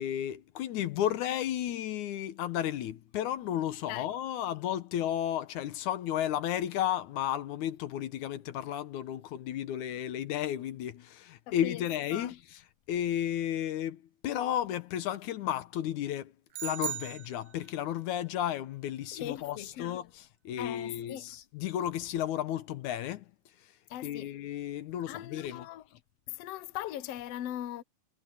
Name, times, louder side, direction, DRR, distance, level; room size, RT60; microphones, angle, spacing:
voice 1, 0.0-12.6 12.9-16.3 16.6-23.3 24.0-25.7, left 11 dB, 85° left, 2.5 m, -33 dB
voice 2, 11.5-11.8 12.1-12.4 19.1-20.0 20.6-21.2 23.9-24.3 25.1-25.8 26.3-27.8, left 12 dB, 65° left, 1.9 m, -40 dB
sound 1, 16.5-18.0, right 13 dB, 80° right, 1.2 m, -38 dB
omnidirectional pair, 3.3 m